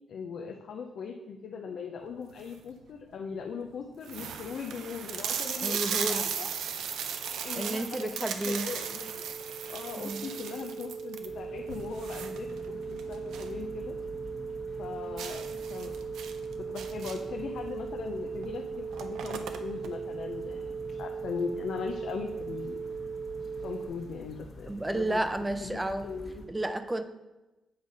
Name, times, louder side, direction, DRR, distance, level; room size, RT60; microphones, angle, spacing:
voice 1, 0.1-6.5 7.4-8.2 8.4-9.2 9.7-14.0 14.8-15.9 16.6-22.8 23.6-25.2 25.6-26.4, left 6 dB, 70° left, 2 dB, 0.6 m, -39 dB
sound 1, 2.2-2.7 3.3-3.4 3.6-3.7 4.0-13.6 13.9-14.0 14.4-14.5 15.2-17.4 18.4-18.5 18.8-19.9, right 7 dB, 85° right, 0.5 m, -36 dB
voice 2, 5.6-6.3 7.6-8.7 10.0-10.3 24.7-26.1 26.5-27.0, right 1 dB, 15° right, 10 dB, 0.5 m, -31 dB
sound 2, 6.9-23.9, right 5 dB, 35° right, 1.2 m, -39 dB
sound 3, 11.3-26.5, left 2 dB, 50° left, 1.4 m, -48 dB
7.9 x 4.0 x 5.2 m, 1.0 s
cardioid pair, 90°, 0 cm